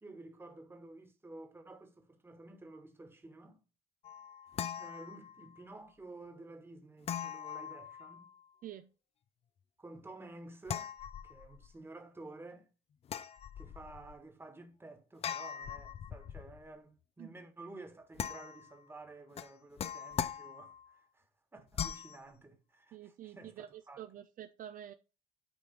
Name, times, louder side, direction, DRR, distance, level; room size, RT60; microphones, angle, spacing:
voice 1, 0.0-3.6 4.8-8.3 9.8-10.9 11.2-12.7 13.6-24.0, right 2 dB, 15° right, 1.4 m, -52 dB
sound 1, 4.0-5.6 7.0-8.4 10.7-11.7 13.0-14.1 15.2-16.6 18.2-18.8 19.4-20.9 21.7-22.2, left 8 dB, 35° left, 0.4 m, -41 dB
voice 2, 22.9-24.9, right 11 dB, 55° right, 0.5 m, -48 dB
8.9 x 3.2 x 5.2 m
cardioid pair, 110°, 17 cm